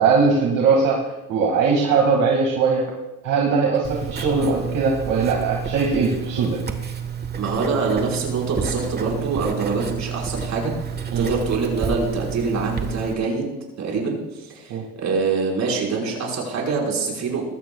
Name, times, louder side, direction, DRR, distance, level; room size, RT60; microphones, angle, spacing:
voice 1, 0.0-2.9 3.2-6.6 11.1-11.3 14.7-14.8, right 5 dB, 70° right, -2 dB, 2.2 m, -20 dB
Writing, 3.8-13.1, right 6 dB, 30° right, 1.4 m, -30 dB
voice 2, 7.4-10.9 11.1-17.5, right 4 dB, 55° right, -1 dB, 4.9 m, -25 dB
20.5 x 15.0 x 2.4 m, 1.0 s
cardioid pair, 115°, 34 cm